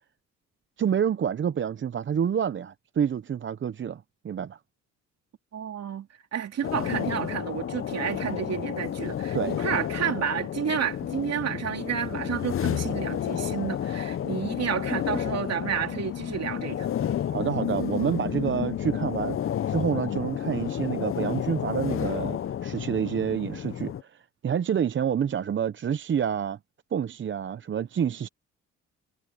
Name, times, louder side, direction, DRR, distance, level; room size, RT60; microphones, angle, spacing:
voice 1, 0.8-4.6 9.3-9.6 17.3-19.4 19.7-26.6 26.9-28.3, right 8 dB, 40° right, 0.7 m, -28 dB
voice 2, 5.5-16.9, right 8 dB, 55° right, 2.7 m, -31 dB
sound 1, 6.6-24.0, left 10 dB, 45° left, 0.7 m, -31 dB
cardioid pair, 90°, 30 cm